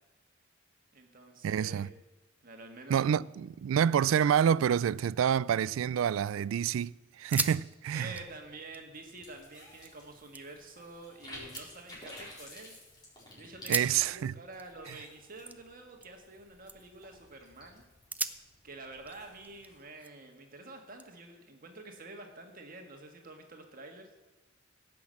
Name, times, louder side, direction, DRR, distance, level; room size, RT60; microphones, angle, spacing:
voice 1, 0.9-2.0 2.4-3.3 7.9-12.8 13.3-17.8 18.6-24.1, right 2 dB, 45° right, 1.6 m, -48 dB
voice 2, 1.4-1.9 2.9-8.1 13.7-14.3, right 8 dB, 85° right, 0.3 m, -28 dB
sound 1, 7.3-7.6 7.9-9.9 10.3-10.9 11.3-12.8 13.5-16.4 16.7-17.1 17.5-17.6 18.1-20.4 21.0-22.2, right 3 dB, 10° right, 0.4 m, -41 dB
sound 2, 8.0-19.8, left 1 dB, 20° left, 4.3 m, -53 dB
16.5 x 6.1 x 7.6 m
head